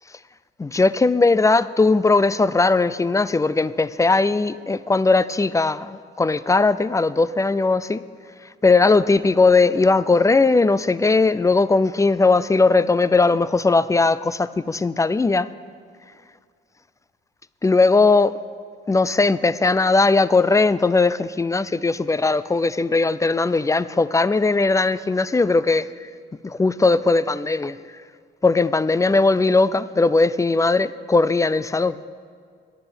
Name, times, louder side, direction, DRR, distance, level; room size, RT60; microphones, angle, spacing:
voice 1, 0.6-8.0 8.6-15.5 17.6-18.3 18.9-25.9 26.4-27.8 28.4-32.0, left 3 dB, 15° left, 17 dB, 0.4 m, -18 dB
11.0 x 8.4 x 8.8 m, 2.1 s
cardioid pair, 90°, 20 cm